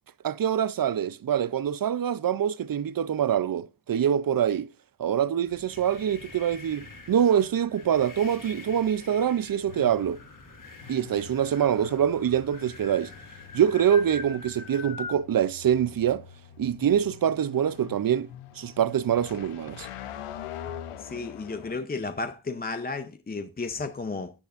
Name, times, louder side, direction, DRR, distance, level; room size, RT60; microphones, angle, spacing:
voice 1, 0.2-4.7 5.0-10.2 10.9-13.1 13.5-16.2 16.6-18.3 18.6-19.9, right 9 dB, 45° right, 0.5 m, -25 dB
sound 1, 5.4-15.2, left 3 dB, 40° left, 2.2 m, -44 dB
sound 2, 6.7-21.8, left 10 dB, 90° left, 0.9 m, -45 dB
voice 2, 21.0-24.3, left 3 dB, 20° left, 0.6 m, -33 dB
13.0 x 8.1 x 2.5 m
wide cardioid pair, 95°, 50 cm